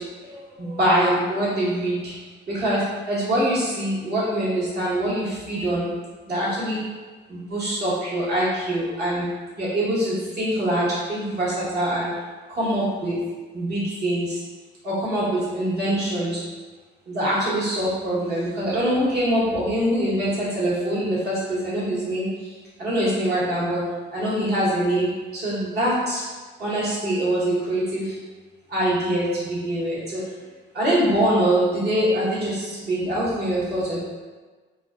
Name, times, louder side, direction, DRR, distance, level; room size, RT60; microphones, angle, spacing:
voice 1, 0.2-2.2 2.5-5.9 6.3-6.8 7.3-9.3 9.6-12.1 12.5-13.2 13.5-14.4 14.8-16.4 17.1-22.5 22.8-23.8 24.1-26.3 26.6-28.1 28.7-30.2 30.7-34.0, right 1 dB, 55° right, -8 dB, 1.1 m, -24 dB
2.4 x 2.2 x 2.3 m, 1.3 s
cardioid pair, 90°, 20 cm